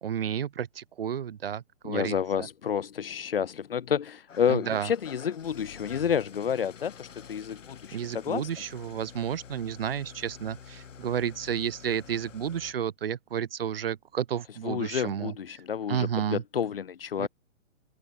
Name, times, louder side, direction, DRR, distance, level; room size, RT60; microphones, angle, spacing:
voice 1, 0.0-2.5 4.5-4.9 7.9-15.3 15.9-16.4 17.2-17.3, right 9 dB, 50° right, 0.4 m, -31 dB
voice 2, 1.8-8.5 14.6-17.3, left 8 dB, 50° left, 0.8 m, -30 dB
Engine starting / Idling, 4.3-12.7, left 7 dB, 75° left, 2.4 m, -48 dB
open air
hypercardioid pair, 180°, 38 cm